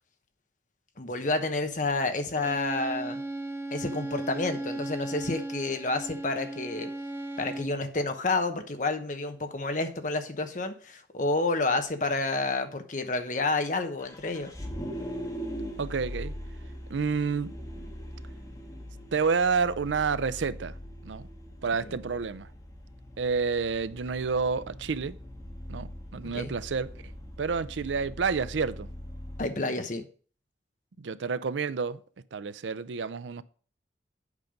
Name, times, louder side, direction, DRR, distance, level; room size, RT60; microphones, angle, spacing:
voice 1, 1.0-3.2 3.7-6.9 7.4-14.5 26.3-26.5 29.4-30.0, left 3 dB, 45° left, 1.0 m, -29 dB
Bowed string instrument, 2.4-7.8, right 2 dB, 15° right, 0.6 m, -36 dB
Vehicle, 14.0-29.5, equal, 20° left, 1.5 m, -41 dB
voice 2, 15.8-16.3 16.9-17.5 19.1-20.7 21.0-21.3 21.6-22.5 23.2-25.2 25.7-26.9 27.4-28.9 31.0-32.0 32.3-33.4, right 5 dB, 80° right, 0.5 m, -29 dB
8.3 x 5.3 x 5.1 m
head